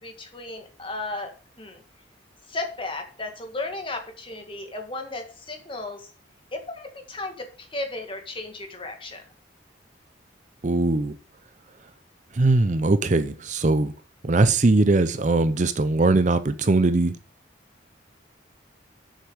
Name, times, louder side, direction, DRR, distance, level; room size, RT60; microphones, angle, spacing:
voice 1, 0.0-1.3 1.6-1.8 2.5-6.1 6.5-9.2, left 2 dB, 25° left, 5 dB, 1.7 m, -34 dB
voice 2, 10.6-11.1 12.3-13.9 14.2-17.2, right 2 dB, 40° right, 12 dB, 0.6 m, -20 dB
7.9 x 6.6 x 6.2 m, 0.39 s
head